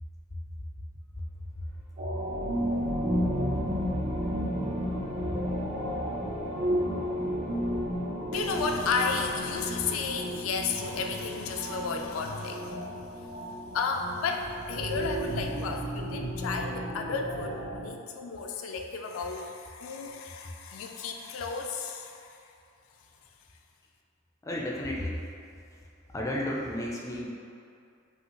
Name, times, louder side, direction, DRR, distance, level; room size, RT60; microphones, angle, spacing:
sound 1, 1.6-10.8, equal, 80° right, 0.7 m, -47 dB
sound 2, 2.0-17.9, equal, 35° right, 0.5 m, -32 dB
voice 1, 8.3-12.8 13.7-22.4, left 4 dB, 80° left, 3 dB, 0.4 m, -33 dB
voice 2, 24.4-25.3 26.1-27.3, left 1 dB, 15° left, -3 dB, 0.4 m, -33 dB
5.4 x 2.7 x 2.9 m, 2.5 s
head